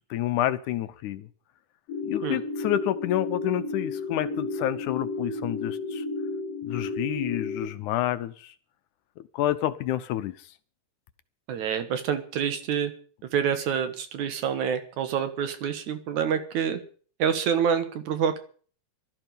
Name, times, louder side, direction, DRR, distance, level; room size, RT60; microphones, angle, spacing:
voice 1, 0.1-1.3 2.0-6.0 6.6-8.5 9.3-10.4, left 13 dB, 75° left, 12 dB, 2.2 m, -29 dB
sound 1, 1.9-7.7, left 3 dB, 55° left, 2.1 m, -32 dB
voice 2, 11.5-12.9 13.3-16.8 17.2-18.4, right 8 dB, 70° right, 9 dB, 2.6 m, -27 dB
16.5 x 13.0 x 5.2 m, 0.43 s
omnidirectional pair, 3.7 m